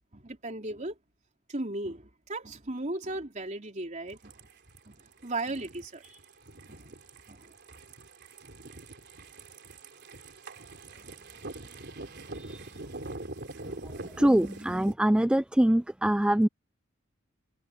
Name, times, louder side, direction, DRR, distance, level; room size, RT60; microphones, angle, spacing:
voice 1, 0.1-1.0 1.5-4.3 4.9-6.2 6.7-6.9 7.3-7.5, right 2 dB, 40° right, 3.7 m, -36 dB
sound 1, 4.1-14.9, right 2 dB, 55° right, 3.9 m, -44 dB
voice 2, 14.2-16.5, right 1 dB, 5° right, 0.3 m, -23 dB
head